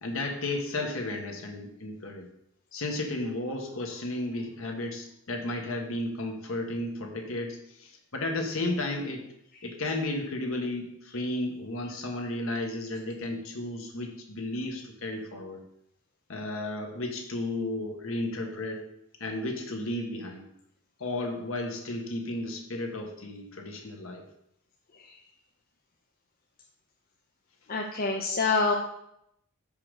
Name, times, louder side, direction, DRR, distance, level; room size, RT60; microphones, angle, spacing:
voice 1, 0.0-2.3 2.7-9.2 9.6-15.6 16.3-18.9 19.2-20.4 21.0-24.2, left 2 dB, 65° left, 3 dB, 1.4 m, -33 dB
voice 2, 27.7-28.7, left 4 dB, 40° left, 2 dB, 0.6 m, -26 dB
5.6 x 5.2 x 6.4 m, 0.78 s
head